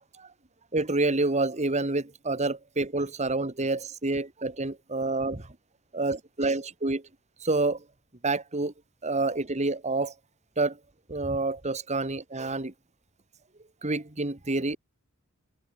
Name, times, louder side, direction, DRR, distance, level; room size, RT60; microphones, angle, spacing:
voice 1, 0.7-5.5 5.9-7.0 7.4-7.8 8.2-8.7 9.0-10.1 10.6-10.8 11.1-12.7 13.8-14.8, right 2 dB, 30° right, 1.6 m, -28 dB
head